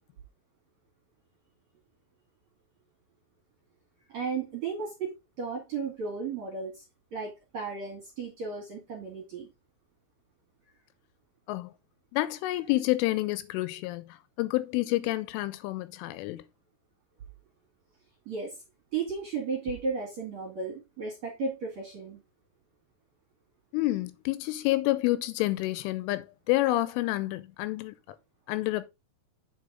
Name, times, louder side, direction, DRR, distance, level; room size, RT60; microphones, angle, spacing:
voice 1, 4.1-6.8 7.1-9.5 18.3-18.6 18.9-22.2, right 4 dB, 50° right, 2.4 m, -34 dB
voice 2, 12.1-16.4 23.7-27.9 28.5-28.9, left 18 dB, 85° left, 3.0 m, -29 dB
8.5 x 5.2 x 3.7 m
omnidirectional pair, 5.8 m